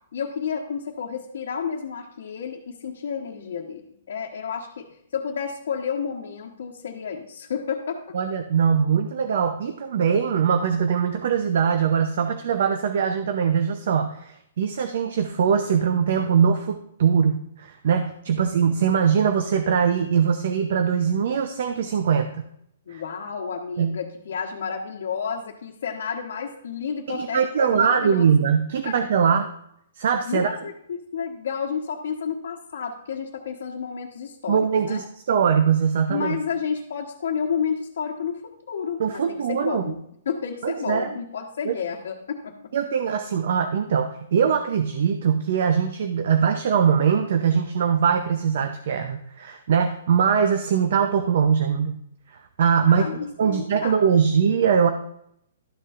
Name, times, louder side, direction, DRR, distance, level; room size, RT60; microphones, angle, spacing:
voice 1, 0.1-4.9 5.1-8.2 22.9-28.3 28.8-29.0 30.3-35.0 36.1-42.5 52.9-54.0, left 6 dB, 60° left, -2 dB, 1.1 m, -31 dB
voice 2, 8.1-22.4 22.9-23.0 23.8-23.9 27.1-29.5 30.0-30.6 34.5-36.4 39.0-39.8 40.6-41.1 41.6-41.7 42.7-52.0 52.3-54.9, right 7 dB, 50° right, 8 dB, 0.6 m, -22 dB
12.5 x 6.8 x 2.5 m, 0.72 s
hypercardioid pair, 175°, 0 cm